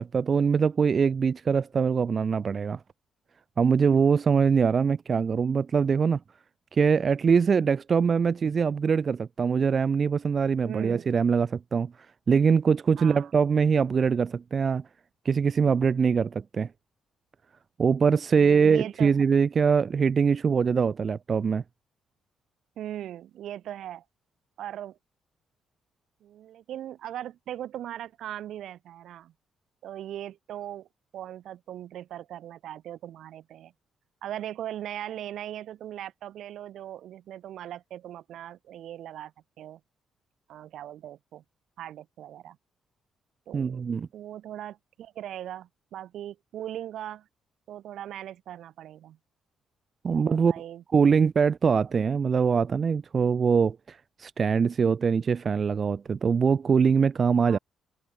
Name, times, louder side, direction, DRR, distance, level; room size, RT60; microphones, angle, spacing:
voice 1, 0.0-2.8 3.6-6.2 6.7-11.9 12.3-14.8 15.3-16.7 17.8-21.6 43.5-44.1 50.0-50.5 50.9-57.6, right 6 dB, 45° right, 0.3 m, -23 dB
voice 2, 10.7-11.0 13.0-13.3 18.4-19.2 22.8-24.0 24.6-25.0 26.2-29.3 29.8-30.9 31.1-33.7 34.2-39.8 40.5-41.4 41.8-42.6 43.5-43.8 44.1-47.3 47.7-49.2 50.1-50.8 57.5-57.6, right 11 dB, 75° right, 1.3 m, -39 dB
cardioid pair, 90°, 0 cm